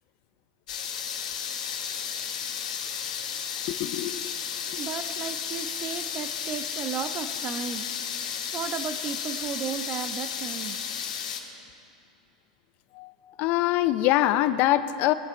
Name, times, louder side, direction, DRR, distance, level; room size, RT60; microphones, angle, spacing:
sound 1, 0.7-11.4, left 7 dB, 70° left, 1.6 m, -33 dB
voice 1, 3.7-4.3 13.0-13.1 13.4-15.1, left 14 dB, 50° left, 14 dB, 0.5 m, -24 dB
voice 2, 4.8-7.8 8.5-10.8, right 7 dB, 35° right, 10 dB, 0.9 m, -34 dB
22.5 x 10.0 x 4.3 m, 2.7 s
hypercardioid pair, 105°, 4 cm